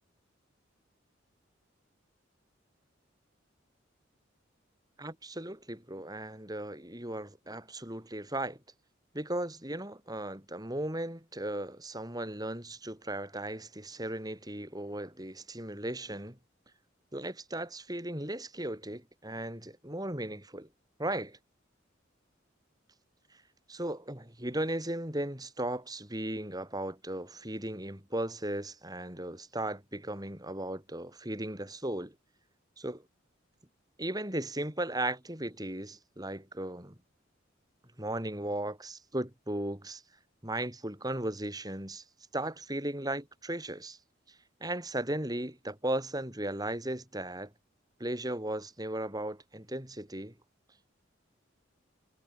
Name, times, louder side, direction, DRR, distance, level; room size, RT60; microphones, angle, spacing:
voice 1, 5.0-8.6 9.1-16.4 17.1-20.7 21.0-21.4 23.3-23.4 23.7-32.1 32.8-33.0 34.0-36.9 38.0-40.0 40.4-42.0 42.3-44.0 44.3-47.5 48.0-50.3, right 1 dB, 20° right, 6.4 m, -36 dB
head